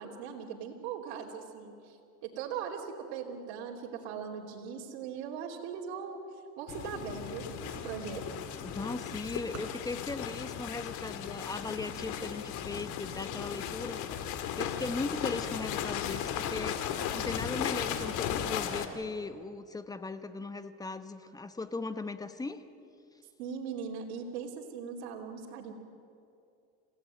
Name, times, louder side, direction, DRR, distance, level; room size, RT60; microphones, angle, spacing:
voice 1, 0.0-6.2 6.6-8.2 23.4-25.7, right 7 dB, 80° right, -1 dB, 3.2 m, -40 dB
sound 1, 6.7-18.9, left 9 dB, 65° left, 2.3 m, -36 dB
voice 2, 8.6-22.6, left 3 dB, 10° left, 10 dB, 1.3 m, -38 dB
sound 2, 9.3-13.1, right 6 dB, 50° right, 3.8 m, -53 dB
27.5 x 16.5 x 9.2 m, 2.6 s
supercardioid pair, 115°, 32 cm